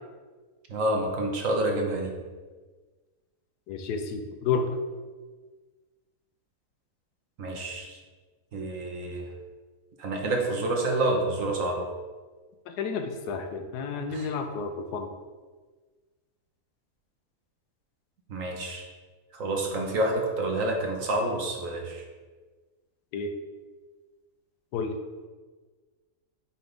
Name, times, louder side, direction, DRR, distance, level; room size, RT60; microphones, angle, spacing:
voice 1, 0.7-2.1 7.4-8.0 8.5-9.3 10.0-11.9 14.0-14.3 18.3-18.9 19.3-22.0, right 1 dB, 60° right, 1 dB, 1.2 m, -28 dB
voice 2, 3.7-4.7 12.7-15.1 23.1-23.3 24.7-24.9, left 5 dB, 80° left, 6 dB, 1.2 m, -31 dB
8.6 x 3.9 x 3.4 m, 1.4 s
omnidirectional pair, 1.7 m